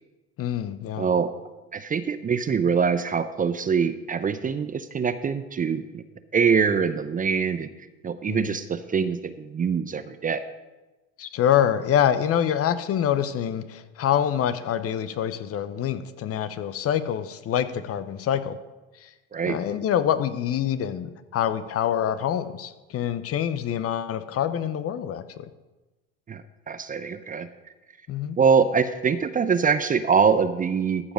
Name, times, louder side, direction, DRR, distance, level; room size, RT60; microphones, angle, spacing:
voice 1, 0.4-1.1 8.3-8.5 11.2-18.6 19.0-19.1 19.5-25.5 28.1-28.4, left 9 dB, 40° left, 13 dB, 0.8 m, -26 dB
voice 2, 1.0-1.3 1.7-6.0 6.3-7.7 8.0-10.4 19.3-19.6 26.3-26.4 26.7-27.5 28.4-31.1, right 6 dB, 25° right, 11 dB, 0.6 m, -24 dB
14.0 x 5.0 x 6.3 m, 1.1 s
hypercardioid pair, 80°, 36 cm